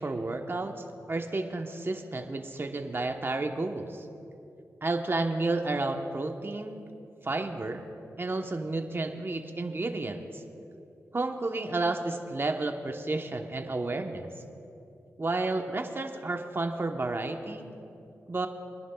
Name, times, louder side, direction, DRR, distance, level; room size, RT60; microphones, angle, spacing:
voice 1, 0.0-4.1 4.8-6.8 7.2-7.8 8.2-10.4 11.1-14.3 15.2-17.6 18.3-18.5, right 2 dB, 40° right, 4 dB, 1.0 m, -31 dB
24.0 x 11.0 x 2.3 m, 2.7 s
cardioid pair, 50°, 6 cm